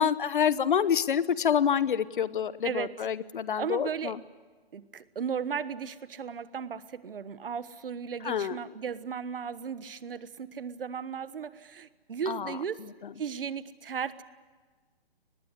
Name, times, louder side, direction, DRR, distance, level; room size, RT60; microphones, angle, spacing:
voice 1, 0.0-4.2 8.2-8.6 12.3-12.6, left 8 dB, 55° left, 17 dB, 1.0 m, -27 dB
voice 2, 2.6-3.1 3.5-4.1 4.7-12.8 13.2-14.2, right 7 dB, 65° right, 15 dB, 1.3 m, -36 dB
23.5 x 20.0 x 9.7 m, 1.4 s
hypercardioid pair, 155°, 30 cm